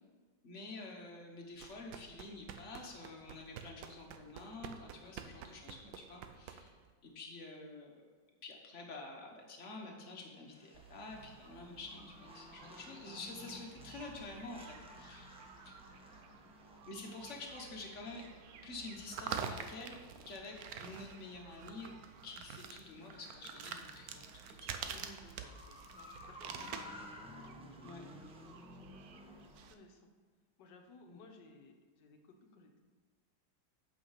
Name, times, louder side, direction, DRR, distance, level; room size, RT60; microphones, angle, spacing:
voice 1, 0.4-6.8 7.0-8.0 8.4-15.4 15.6-15.7 16.9-18.2 18.6-20.0 20.3-21.9 22.2-24.9 27.8-28.1 31.1-31.2, left 3 dB, 45° left, 1 dB, 1.5 m, -48 dB
sound 1, 1.5-6.9, right 8 dB, 85° right, 1.4 m, -50 dB
voice 2, 4.8-5.2 15.4-16.0 24.8-27.6 29.1-30.1 30.6-32.8, left 2 dB, 70° left, 4 dB, 1.5 m, -60 dB
sound 2, 10.5-29.7, left 1 dB, 5° right, 0.4 m, -56 dB
sound 3, 10.7-29.7, right 7 dB, 65° right, 1.0 m, -49 dB
8.3 x 5.7 x 5.8 m, 1.5 s
omnidirectional pair, 2.0 m